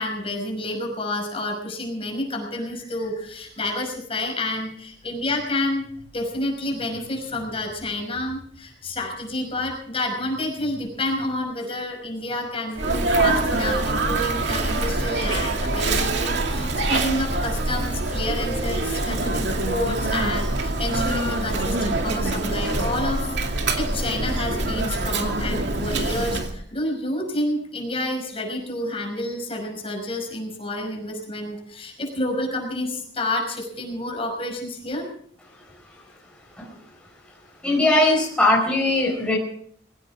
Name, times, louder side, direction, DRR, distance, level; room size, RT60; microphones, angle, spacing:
voice 1, 0.0-5.9 6.1-23.3 23.5-35.1, left 1 dB, 30° left, 2 dB, 5.7 m, -29 dB
Sneeze, 12.8-26.5, right 2 dB, 70° right, 2.3 m, -24 dB
voice 2, 37.6-39.4, left 2 dB, 5° left, -3 dB, 4.9 m, -20 dB
22.5 x 17.0 x 3.6 m, 0.62 s
head